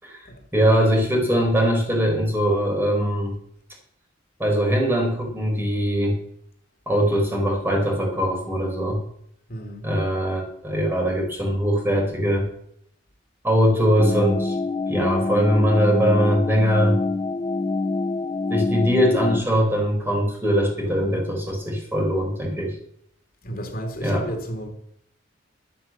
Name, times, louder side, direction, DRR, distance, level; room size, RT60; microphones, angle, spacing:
voice 1, 0.0-3.3 4.4-6.2 6.9-9.0 9.8-12.5 13.4-14.5 14.9-17.0 18.5-22.7 24.0-24.3, equal, 10° right, 0 dB, 4.6 m, -21 dB
voice 2, 9.5-9.9 23.4-24.7, equal, 45° left, 3 dB, 3.1 m, -32 dB
sound 1, 14.0-19.4, left 3 dB, 20° left, 0.5 m, -26 dB
12.5 x 8.8 x 7.4 m, 0.68 s
head